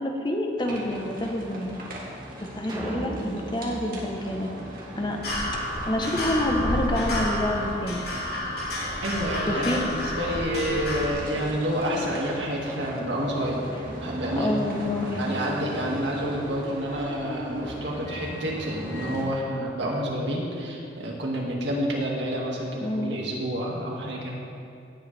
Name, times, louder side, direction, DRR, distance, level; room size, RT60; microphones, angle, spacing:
voice 1, 0.0-1.8 2.4-4.5 5.0-5.2 5.9-8.1 9.5-9.8 14.4-15.2 22.8-23.2, left 1 dB, 25° left, 2 dB, 0.9 m, -28 dB
sound 1, 0.6-19.2, equal, 50° right, 2.0 m, -38 dB
sound 2, 2.7-5.2, right 1 dB, 25° right, 1.4 m, -37 dB
sound 3, 5.2-11.1, left 1 dB, 55° left, 2.7 m, -30 dB
voice 2, 9.0-13.6 14.0-14.5 15.2-24.3, equal, 85° right, -2 dB, 2.0 m, -29 dB
17.0 x 8.0 x 3.4 m, 2.6 s
head